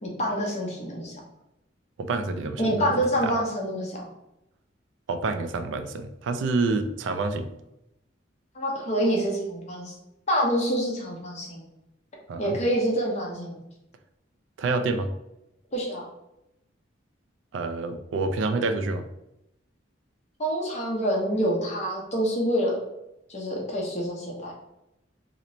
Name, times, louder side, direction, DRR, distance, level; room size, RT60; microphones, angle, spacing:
voice 1, 0.0-1.1 2.6-4.1 8.5-9.9 10.3-11.6 12.4-13.7 15.7-16.0 20.4-22.7 23.3-24.5, equal, 40° left, -2 dB, 0.8 m, -26 dB
voice 2, 2.0-2.6 3.2-3.4 5.1-7.5 12.3-12.6 14.6-15.1 17.5-19.0, right 3 dB, 75° right, 9 dB, 0.3 m, -27 dB
2.9 x 2.1 x 3.8 m, 0.87 s
head